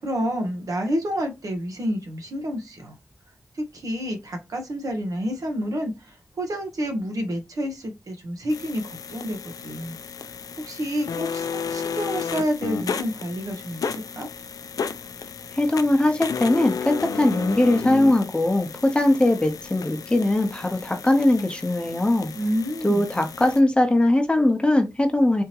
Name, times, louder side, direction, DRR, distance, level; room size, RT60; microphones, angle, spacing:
voice 1, 0.0-3.0 3.5-10.0 10.3-14.3 22.4-23.1, equal, 75° right, 1.0 m, -29 dB
sound 1, 8.5-23.6, left 6 dB, 90° left, 0.3 m, -33 dB
voice 2, 15.5-22.3 22.8-25.4, left 1 dB, 15° left, 0.8 m, -20 dB
3.5 x 2.8 x 2.8 m
wide cardioid pair, 80°, 6 cm